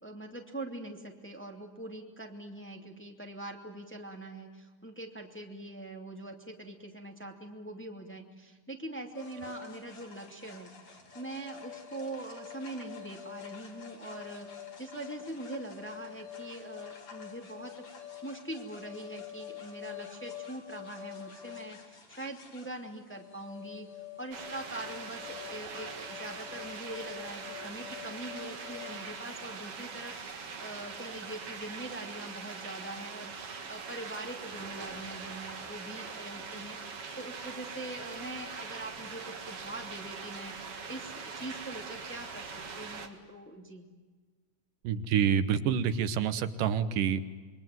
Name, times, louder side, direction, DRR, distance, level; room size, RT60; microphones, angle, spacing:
voice 1, 0.0-23.9 24.2-42.5 42.8-43.9, right 2 dB, 5° left, 2 dB, 2.1 m, -43 dB
sound 1, 9.1-28.9, left 10 dB, 55° left, 5.0 m, -47 dB
sound 2, 24.3-43.1, right 5 dB, 45° right, 2.9 m, -42 dB
voice 2, 44.8-47.2, right 8 dB, 80° right, 12 dB, 2.7 m, -27 dB
27.0 x 22.5 x 9.2 m, 1.4 s
omnidirectional pair, 3.8 m